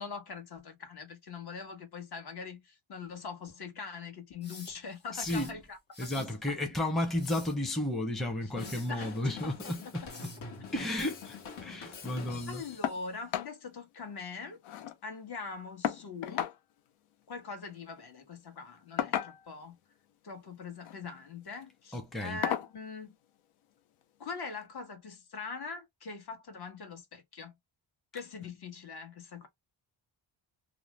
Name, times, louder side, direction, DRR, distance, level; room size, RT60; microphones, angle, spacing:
voice 1, 0.0-6.2 8.4-8.5 8.8-9.5 11.0-11.1 11.8-12.0 12.5-14.6 15.0-16.5 17.3-19.7 20.2-23.2 24.2-27.5 28.1-29.5, left 5 dB, 50° left, 1.1 m, -42 dB
sound 1, 4.4-5.5 5.9-6.3 7.0-7.6 8.6-8.9 10.1-10.5, left 3 dB, 20° left, 1.1 m, -49 dB
voice 2, 5.1-5.5 6.0-10.0 10.7-11.4 11.6-12.6 21.9-22.4, left 1 dB, ahead, 0.6 m, -33 dB
Drum kit / Drum, 8.6-13.0, left 5 dB, 70° left, 1.1 m, -45 dB
sound 2, 12.8-13.0 13.3-13.5 13.9-14.0 14.3-15.0 15.8-16.6 17.8-18.0 19.0-19.6 20.7-21.0 21.5-21.6 22.4-22.7 24.0-24.1 24.6-24.7, left 11 dB, 85° left, 0.6 m, -34 dB
2.5 x 2.0 x 3.0 m
cardioid pair, 95°, 48 cm